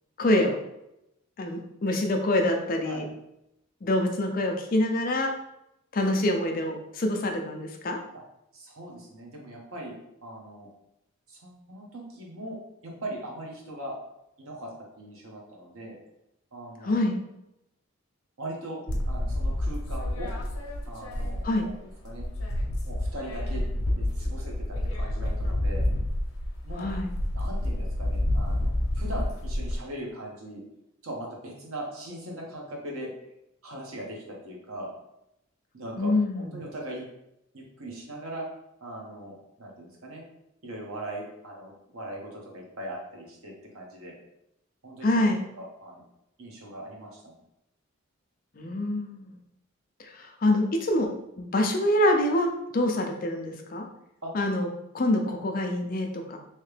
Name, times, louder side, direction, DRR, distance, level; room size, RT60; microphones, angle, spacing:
voice 1, 0.2-0.6 1.4-3.0 3.8-5.3 5.9-8.0 16.8-17.2 21.4-21.7 26.7-27.1 36.0-36.5 45.0-45.4 48.6-49.4 50.0-51.1 51.4-53.9 54.3-54.7 54.9-56.4, left 1 dB, 40° left, 3 dB, 0.4 m, -26 dB
voice 2, 8.5-9.9 10.2-10.7 11.3-12.6 12.8-14.0 14.4-16.0 16.5-17.1 18.4-18.8 19.0-20.3 20.9-21.7 22.0-22.3 22.8-23.6 23.9-24.5 24.9-25.9 26.6-26.9 27.3-30.6 31.0-33.1 33.6-34.9 35.7-37.1 37.5-38.4 38.8-40.2 40.6-44.1 44.8-45.3 45.6-46.0 46.4-47.4 54.2-54.3, right 1 dB, 85° right, -1 dB, 1.0 m, -40 dB
sound 1, 18.9-21.7 22.0-29.8, left 1 dB, 90° left, 0.6 m, -29 dB
3.2 x 2.8 x 3.2 m, 0.84 s
head